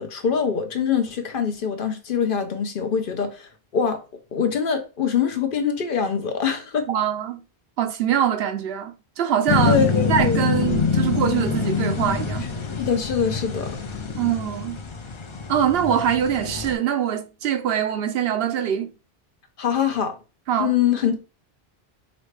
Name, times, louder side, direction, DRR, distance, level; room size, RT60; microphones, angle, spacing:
voice 1, 0.0-4.0 4.3-6.8 9.6-10.4 12.8-13.8 19.6-20.1 20.6-21.2, left 7 dB, 60° left, 0.8 m, -24 dB
voice 2, 6.9-7.4 7.8-9.8 10.1-12.5 14.2-14.8 15.5-18.9 20.5-20.7, right 9 dB, 75° right, 0.8 m, -23 dB
sound 1, 9.5-16.7, left 5 dB, 40° left, 0.5 m, -25 dB
5.0 x 2.7 x 3.2 m
omnidirectional pair, 1.0 m